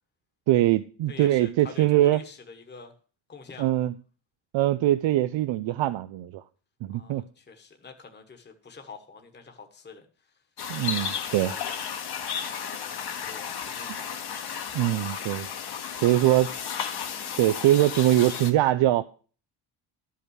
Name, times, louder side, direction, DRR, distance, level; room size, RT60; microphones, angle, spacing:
voice 1, 0.5-2.2 3.6-3.9 4.5-6.4 6.8-7.2 10.7-11.6 14.7-15.5 16.0-16.5 17.4-19.0, right 14 dB, 75° right, 0.6 m, -22 dB
voice 2, 1.1-2.9 3.3-3.8 6.9-10.4 10.9-11.8 12.4-14.2 15.9-16.1, left 5 dB, 25° left, 1.2 m, -47 dB
sound 1, 10.6-18.5, left 7 dB, 55° left, 1.3 m, -34 dB
12.0 x 5.7 x 6.3 m
cardioid pair, 145°, 45 cm